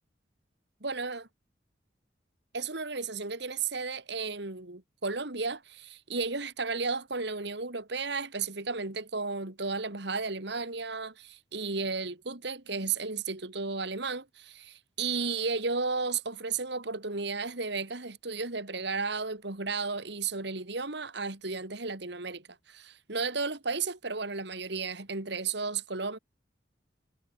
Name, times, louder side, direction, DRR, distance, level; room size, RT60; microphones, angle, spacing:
voice 1, 0.8-1.3 2.5-26.2, right 4 dB, 65° right, 2.6 m, -33 dB
head